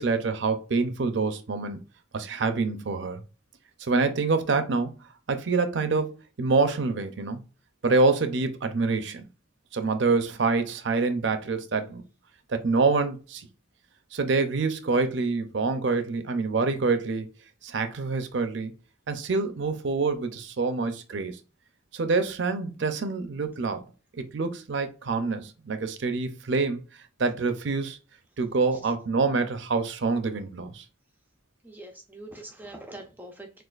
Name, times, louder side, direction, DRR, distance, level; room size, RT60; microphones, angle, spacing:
voice 1, 0.0-1.8 2.1-3.2 3.8-4.9 5.3-7.4 7.8-9.2 9.7-12.0 12.5-13.5 14.1-17.3 17.6-18.7 19.1-21.4 21.9-23.8 24.3-26.8 27.2-28.0 28.4-30.8, right 4 dB, 65° right, 0.5 m, -26 dB
voice 2, 31.6-33.6, right 1 dB, 10° right, 0.5 m, -44 dB
6.3 x 2.4 x 2.4 m
head